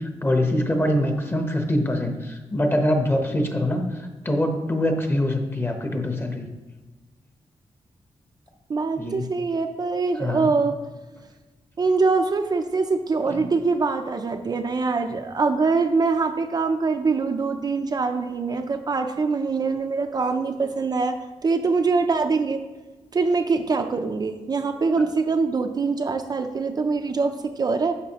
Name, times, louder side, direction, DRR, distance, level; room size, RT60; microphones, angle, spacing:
voice 1, 0.0-6.5 9.0-9.2 10.2-10.5 13.3-13.4 25.0-25.1, left 1 dB, 20° left, 4 dB, 0.9 m, -24 dB
voice 2, 8.7-10.8 11.8-21.2 21.4-22.6 23.1-27.9, right 4 dB, 40° right, 5 dB, 0.5 m, -23 dB
11.0 x 6.1 x 2.9 m, 1.2 s
wide cardioid pair, 145°, 11 cm